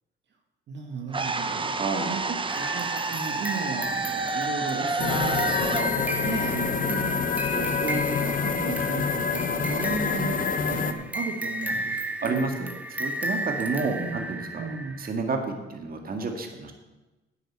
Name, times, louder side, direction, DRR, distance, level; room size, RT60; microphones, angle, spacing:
voice 1, 0.7-7.0 7.5-12.5 13.9-14.2 14.6-15.0, right 5 dB, 65° right, 2 dB, 1.8 m, -35 dB
sound 1, 1.1-7.2, right 4 dB, 25° right, 0.9 m, -30 dB
voice 2, 1.8-2.2 6.9-7.2 12.2-14.7 15.0-16.7, right 4 dB, 45° right, 4 dB, 1.9 m, -30 dB
sound 2, 2.5-15.1, right 1 dB, 10° right, 1.4 m, -35 dB
sound 3, 5.0-10.9, left 6 dB, 45° left, 0.9 m, -27 dB
10.0 x 7.7 x 7.4 m, 1.1 s
cardioid pair, 90°, 20 cm